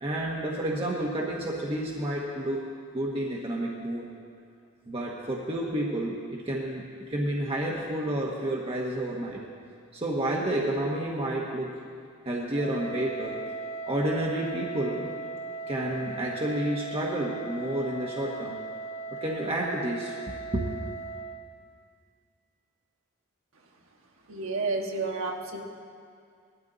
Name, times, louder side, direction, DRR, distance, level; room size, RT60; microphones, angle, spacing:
voice 1, 0.0-2.6 2.9-4.1 4.9-9.4 9.9-11.8 12.2-13.4 13.8-15.1 15.7-18.6 19.1-20.2 20.5-20.6, right 1 dB, 25° right, -3 dB, 1.2 m, -30 dB
Wind instrument woodwind instrument, 12.5-21.4, right 3 dB, 35° left, 1.4 m, -38 dB
voice 2, 24.3-25.6, right 3 dB, 75° right, 1 dB, 1.5 m, -30 dB
19.0 x 13.0 x 4.0 m, 2.3 s
head